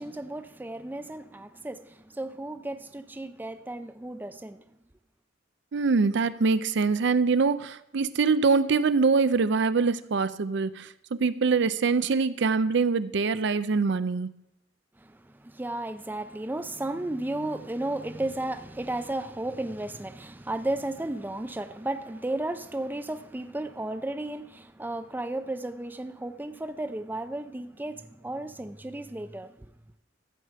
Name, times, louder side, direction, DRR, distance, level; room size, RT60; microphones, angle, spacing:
voice 1, 0.0-4.6 15.0-29.5, right 1 dB, 10° right, 0.5 m, -34 dB
voice 2, 5.7-14.3, right 4 dB, 65° right, 0.5 m, -24 dB
14.5 x 5.0 x 7.5 m
head